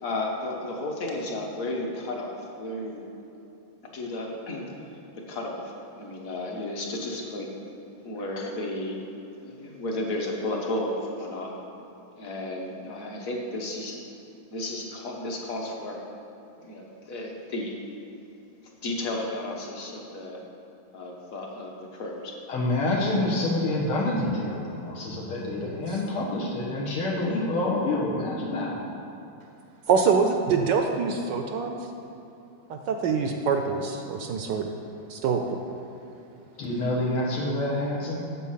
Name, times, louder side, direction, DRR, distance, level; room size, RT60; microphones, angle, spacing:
voice 1, 0.0-3.0 3.9-4.7 5.3-7.5 8.0-9.0 9.4-11.5 12.2-14.0 14.5-16.0 16.6-17.8 18.8-20.4 20.9-22.3, left 2 dB, 45° left, 0 dB, 1.4 m, -33 dB
voice 2, 22.5-28.8 36.6-38.2, left 2 dB, 90° left, -4 dB, 2.4 m, -27 dB
voice 3, 29.9-31.8 32.7-34.7 35.1-35.4, right 5 dB, 75° right, 4 dB, 1.1 m, -25 dB
8.4 x 7.2 x 5.7 m, 2.8 s
omnidirectional pair, 2.3 m